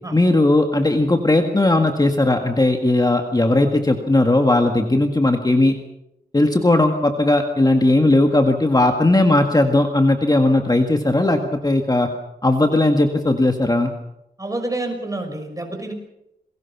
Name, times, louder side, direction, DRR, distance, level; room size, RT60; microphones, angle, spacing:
voice 1, 0.1-5.7 6.3-12.1 12.4-13.9, left 2 dB, 20° left, 4 dB, 1.8 m, -17 dB
voice 2, 14.4-15.9, right 2 dB, 20° right, 4 dB, 6.2 m, -28 dB
28.5 x 21.5 x 6.0 m, 0.85 s
wide cardioid pair, 95°, 17 cm